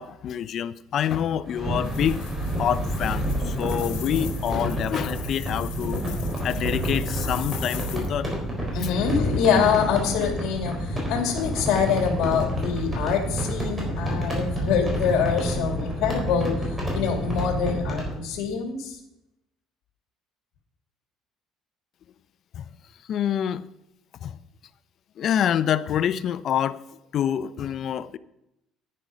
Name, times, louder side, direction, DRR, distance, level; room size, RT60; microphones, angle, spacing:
voice 1, 0.0-2.2 2.6-6.0 6.4-8.3 8.8-8.9 22.5-22.6 23.1-23.6 24.2-24.4 25.2-28.2, left 9 dB, 50° left, 16 dB, 0.5 m, -27 dB
sound 1, 1.4-18.1, equal, 15° right, 4.3 m, -29 dB
sound 2, 1.8-8.1, left 12 dB, 90° left, 1.6 m, -42 dB
voice 2, 8.7-19.0, left 7 dB, 70° left, 4 dB, 2.3 m, -25 dB
10.0 x 9.6 x 5.0 m, 0.86 s
cardioid pair, 130°, 0 cm